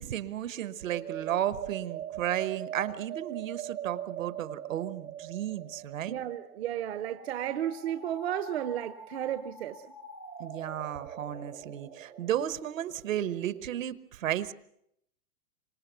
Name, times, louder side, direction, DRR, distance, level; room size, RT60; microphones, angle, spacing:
voice 1, 0.0-6.2 10.4-14.5, right 11 dB, 60° right, 1.3 m, -33 dB
sound 1, 0.5-13.8, right 9 dB, 85° right, 3.3 m, -43 dB
voice 2, 6.1-9.9, right 11 dB, 45° right, 0.9 m, -33 dB
26.5 x 17.5 x 6.9 m
hypercardioid pair, 170°, 44 cm